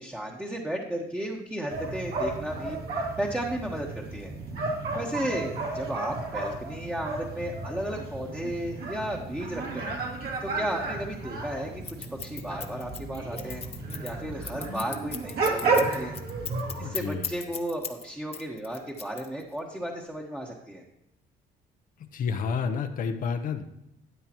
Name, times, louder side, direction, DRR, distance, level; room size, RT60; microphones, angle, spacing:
voice 1, 0.0-2.8 3.2-4.3 4.9-9.9 10.4-11.8 12.1-13.6 14.0-16.1 16.8-20.8, right 1 dB, 5° right, -2 dB, 1.2 m, -34 dB
sound 1, 1.7-16.9, right 3 dB, 65° right, 2.7 m, -32 dB
Scissors, 11.8-18.0 18.3-19.6, left 6 dB, 35° left, 1.1 m, -37 dB
voice 2, 16.8-17.4 22.1-23.7, left 5 dB, 55° left, 6 dB, 0.7 m, -30 dB
12.5 x 9.1 x 3.0 m, 0.84 s
cardioid pair, 110°, 17 cm